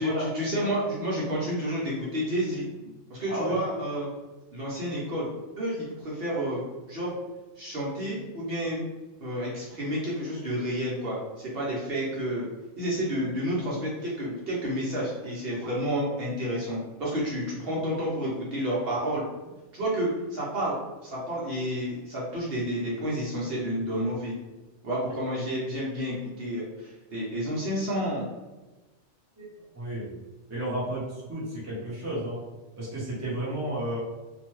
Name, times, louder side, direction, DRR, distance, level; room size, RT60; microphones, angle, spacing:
voice 1, 0.0-2.6 3.1-4.1 4.5-5.3 5.6-7.1 7.6-8.8 9.2-12.5 12.8-19.2 19.7-20.7 21.0-24.3 24.8-28.3, equal, 60° right, -6 dB, 0.9 m, -30 dB
voice 2, 3.3-3.6 29.4-30.1 30.5-32.4 32.8-34.0, right 1 dB, 15° right, -7 dB, 0.7 m, -32 dB
2.8 x 2.1 x 3.0 m, 1.1 s
omnidirectional pair, 1.2 m